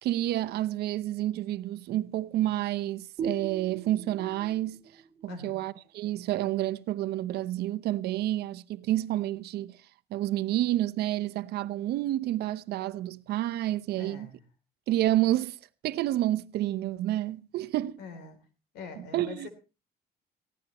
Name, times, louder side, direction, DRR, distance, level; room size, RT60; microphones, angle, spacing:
voice 1, 0.0-4.8 5.2-9.8 10.1-14.3 14.9-15.6 15.8-18.0 19.0-19.5, right 14 dB, 75° right, 0.8 m, -29 dB
sound 1, 3.2-6.6, right 5 dB, 50° right, 1.9 m, -40 dB
voice 2, 5.3-5.6 14.0-14.4 18.0-18.4 18.7-19.5, left 5 dB, 90° left, 3.3 m, -43 dB
18.5 x 15.0 x 3.0 m
cardioid pair, 110°, 17 cm